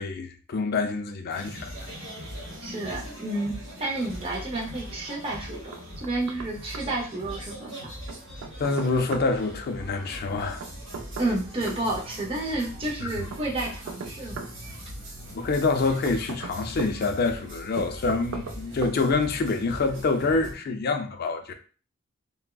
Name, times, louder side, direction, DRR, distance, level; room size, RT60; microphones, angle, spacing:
voice 1, 0.0-1.7 8.6-10.6 13.0-13.1 15.3-21.5, left 3 dB, 50° left, 0.4 m, -26 dB
sound 1, 1.3-20.5, equal, 60° right, 1.1 m, -41 dB
voice 2, 2.6-3.5 3.8-7.7 11.2-14.5, right 2 dB, 25° right, 0.5 m, -30 dB
Knock, 5.7-6.5 6.7-6.8 8.1-9.3 10.6-11.8 13.3-14.5 15.7-16.9 17.8-18.6 18.8-19.0, right 5 dB, 75° right, 0.3 m, -37 dB
3.3 x 2.0 x 2.2 m
head